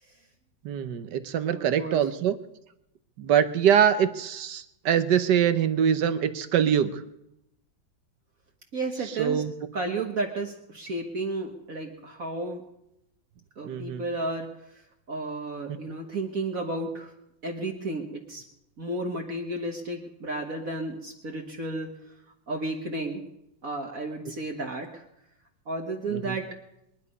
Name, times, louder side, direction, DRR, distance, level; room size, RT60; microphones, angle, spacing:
voice 1, 0.6-2.3 3.2-7.0 9.2-9.5 13.6-14.0 26.1-26.3, right 8 dB, 65° right, 11 dB, 1.4 m, -24 dB
voice 2, 1.5-2.0 8.7-9.4 9.7-12.6 13.6-14.5 15.1-17.1 17.4-18.4 18.8-21.9 22.5-23.2 23.6-25.0 25.7-26.5, right 2 dB, 50° right, 1 dB, 1.7 m, -32 dB
22.5 x 10.5 x 5.4 m, 0.84 s
omnidirectional pair, 2.1 m